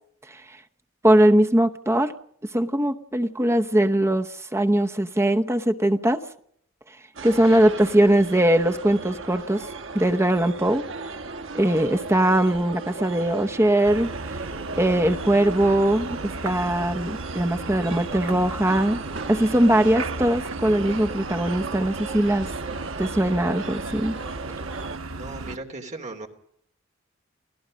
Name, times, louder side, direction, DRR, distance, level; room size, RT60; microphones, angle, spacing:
voice 1, 1.0-2.1 2.5-6.2 7.2-9.7 9.9-10.8 11.5-14.1 14.7-19.0 19.3-22.5 23.0-24.1, right 1 dB, 15° right, 6 dB, 0.9 m, -21 dB
sound 1, 7.1-25.0, right 3 dB, 70° right, 1.4 m, -36 dB
sound 2, 13.8-25.6, right 3 dB, 90° right, 1.0 m, -36 dB
voice 2, 25.1-26.3, right 2 dB, 35° right, 4 dB, 3.0 m, -37 dB
29.0 x 17.0 x 5.2 m, 0.66 s
head